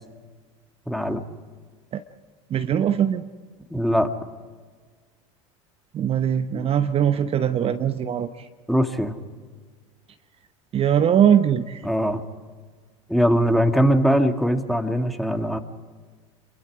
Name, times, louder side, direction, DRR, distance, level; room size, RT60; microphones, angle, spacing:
voice 1, 0.9-1.2 3.7-4.1 8.7-9.2 11.8-12.2 13.1-15.6, equal, ahead, 6 dB, 2.0 m, -21 dB
voice 2, 2.5-3.2 5.9-8.5 10.7-11.8, right 9 dB, 35° right, 8 dB, 1.0 m, -21 dB
27.0 x 23.0 x 5.0 m, 1.5 s
hypercardioid pair, 85°, 17 cm